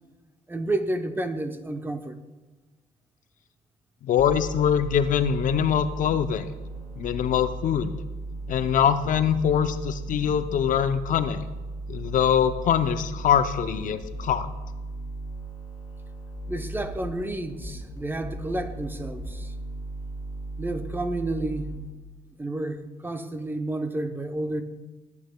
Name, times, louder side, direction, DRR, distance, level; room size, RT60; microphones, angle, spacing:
voice 1, 0.5-2.2 16.5-19.5 20.6-21.7 22.4-24.6, right 2 dB, 10° right, 0.7 m, -30 dB
voice 2, 4.0-6.5 7.0-7.9 8.5-11.4 11.9-14.5, left 8 dB, 50° left, 0.5 m, -23 dB
sound 1, 4.2-21.8, right 2 dB, 15° left, 3.2 m, -36 dB
17.5 x 8.6 x 2.2 m
cardioid pair, 110°, 17 cm